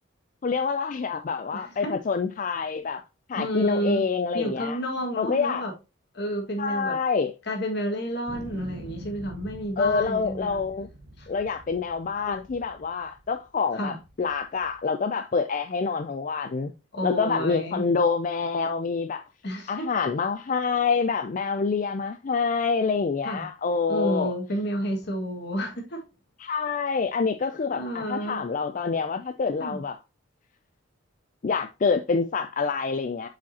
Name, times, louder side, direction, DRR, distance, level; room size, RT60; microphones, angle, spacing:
voice 1, 0.4-3.0 3.3-4.8 5.2-5.6 6.6-7.3 9.8-10.9 11.3-16.7 17.0-19.2 19.7-24.3 26.4-30.0 31.4-33.3, left 5 dB, 40° left, 0.4 m, -27 dB
voice 2, 1.5-1.9 3.3-4.1 4.3-5.7 6.1-7.0 7.4-10.6 11.2-11.3 13.7-14.0 16.9-17.8 19.4-19.9 23.2-23.5 23.9-26.0 27.7-28.4 29.6-29.8, equal, 55° left, 1.9 m, -30 dB
sound 1, 8.3-13.5 14.0-14.8, right 1 dB, 75° right, 1.0 m, -44 dB
7.2 x 5.1 x 2.8 m
head